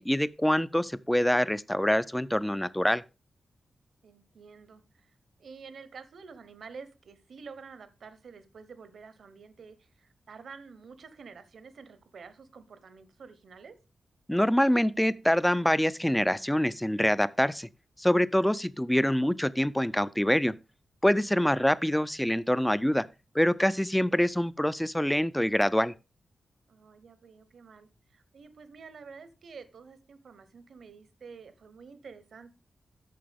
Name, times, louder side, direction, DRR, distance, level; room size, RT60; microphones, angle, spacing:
voice 1, 0.0-3.0 14.3-17.7 18.0-20.5 21.0-23.1 23.3-25.9, equal, 5° left, 0.3 m, -25 dB
voice 2, 4.0-5.1 5.4-13.8 21.3-21.5 26.7-32.5, right 5 dB, 70° right, 0.9 m, -49 dB
8.7 x 6.7 x 3.5 m
wide cardioid pair, 145°, 0 cm